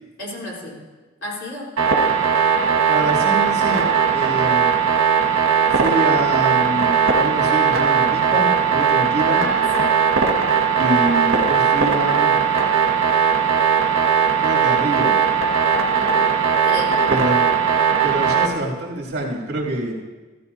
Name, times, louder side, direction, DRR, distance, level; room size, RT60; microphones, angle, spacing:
voice 1, 0.2-0.8 1.2-1.7 9.3-10.0 16.0-16.2 16.6-17.0, left 1 dB, 70° left, -5 dB, 3.8 m, -32 dB
sound 1, 1.8-18.5, right 6 dB, 75° right, 1.5 m, -18 dB
voice 2, 2.9-4.7 5.7-9.4 10.8-12.3 14.4-15.1 17.1-17.7 18.0-19.9, right 1 dB, 55° right, -4 dB, 2.8 m, -26 dB
15.0 x 14.0 x 2.8 m, 1.3 s
head